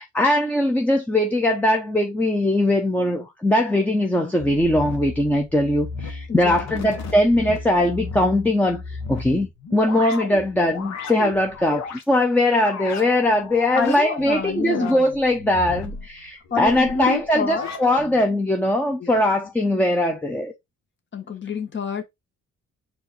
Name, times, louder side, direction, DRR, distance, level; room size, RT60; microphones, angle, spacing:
voice 1, 0.0-20.5, left 1 dB, 5° left, 0.8 m, -21 dB
sound 1, 4.4-12.0 12.5-18.3, left 4 dB, 65° left, 1.4 m, -35 dB
voice 2, 6.3-7.0 13.7-15.0 16.5-17.7 19.0-19.4 21.1-22.0, left 5 dB, 40° left, 1.4 m, -28 dB
4.5 x 2.8 x 4.2 m
cardioid pair, 90°, 30 cm